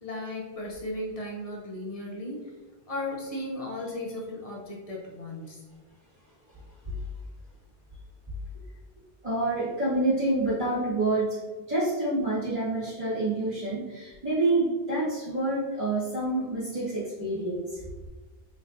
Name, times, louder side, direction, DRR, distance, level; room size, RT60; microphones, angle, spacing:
voice 1, 0.0-2.5 2.9-5.6, left 1 dB, 35° left, -3 dB, 0.8 m, -36 dB
voice 2, 9.2-11.4 11.7-17.8, right 2 dB, 40° right, -12 dB, 1.6 m, -27 dB
4.2 x 3.2 x 2.6 m, 1.2 s
omnidirectional pair, 1.1 m